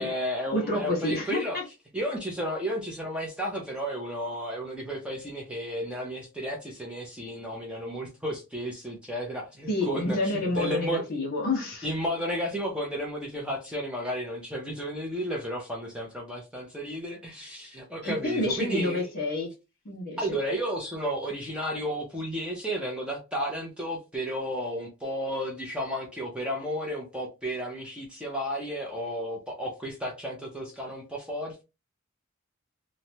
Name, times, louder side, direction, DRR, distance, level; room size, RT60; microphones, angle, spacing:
voice 1, 0.0-1.6 1.9-11.0 11.8-19.1 20.2-31.6, equal, 5° right, 0.5 m, -33 dB
voice 2, 0.5-1.6 9.7-11.9 18.0-19.5 19.8-20.2, left 2 dB, 45° left, 1.2 m, -28 dB
3.0 x 2.1 x 2.7 m
head